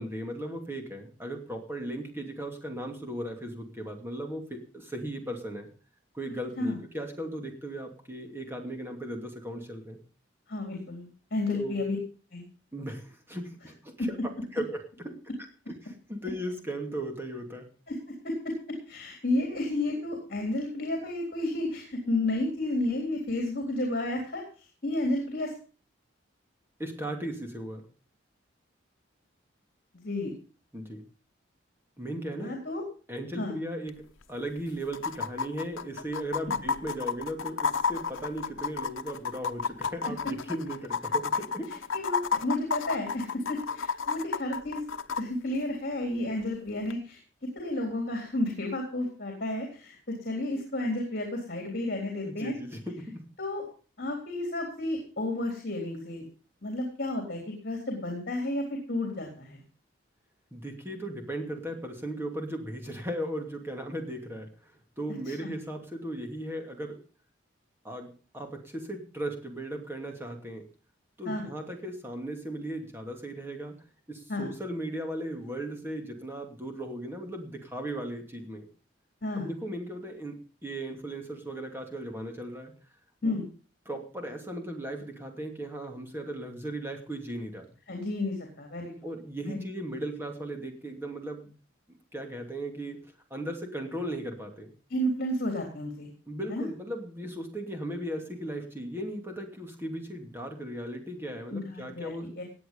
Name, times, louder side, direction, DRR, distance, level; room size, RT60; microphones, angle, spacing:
voice 1, 0.0-5.7 6.1-10.0 11.5-11.8 12.7-14.2 14.5-15.1 15.7-17.7 26.8-27.8 30.7-31.0 32.0-32.5 33.1-34.0 34.3-41.7 52.2-53.2 60.5-64.7 65.0-67.0 67.8-70.6 71.2-73.7 74.1-78.6 79.3-80.4 80.6-82.7 83.2-83.3 83.9-87.7 89.0-91.5 92.1-93.0 93.3-94.7 96.3-102.3, right 1 dB, 10° right, 3 dB, 2.6 m, -37 dB
voice 2, 10.5-12.0 12.3-12.4 14.0-14.1 17.9-18.0 18.2-18.5 18.9-24.4 24.8-25.5 30.0-30.4 32.4-32.8 33.4-33.6 40.0-40.1 41.9-44.8 45.2-52.5 53.4-53.6 54.0-56.2 56.6-59.6 65.3-65.5 71.3-71.5 74.3-74.5 79.2-79.5 83.2-83.4 87.9-88.9 89.4-89.6 94.9-96.1 96.5-96.7 101.5-102.4, left 1 dB, 50° left, 2 dB, 3.6 m, -31 dB
sound 1, 33.9-34.0 34.2-34.3 34.9-45.2 46.9-47.0, left 5 dB, 90° left, 0.9 m, -31 dB
17.5 x 9.3 x 5.4 m, 0.38 s
head